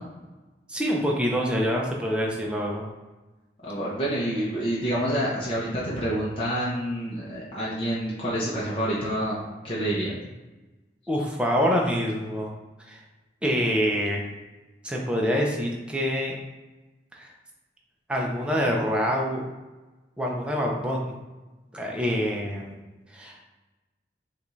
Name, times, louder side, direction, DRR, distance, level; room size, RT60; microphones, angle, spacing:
voice 1, 0.7-2.9 11.1-12.5 12.9-13.0 13.4-14.2 14.8-16.4 17.2-17.3 18.1-19.4 20.2-21.1 21.7-22.7 23.1-23.4, equal, 5° right, -2 dB, 0.6 m, -26 dB
voice 2, 3.6-9.4 9.6-10.2, right 1 dB, 30° left, -7 dB, 0.8 m, -28 dB
5.7 x 2.5 x 3.1 m, 1.2 s
head